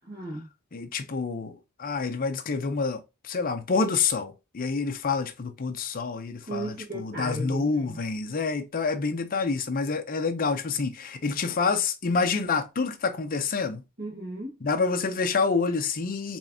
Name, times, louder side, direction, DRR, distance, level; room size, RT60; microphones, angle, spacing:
voice 1, 0.0-0.5 6.4-8.0 14.0-14.5, right 1 dB, 50° right, 1.4 m, -35 dB
voice 2, 0.7-13.8 14.6-16.4, left 4 dB, 40° left, 0.6 m, -28 dB
4.5 x 3.1 x 2.7 m
head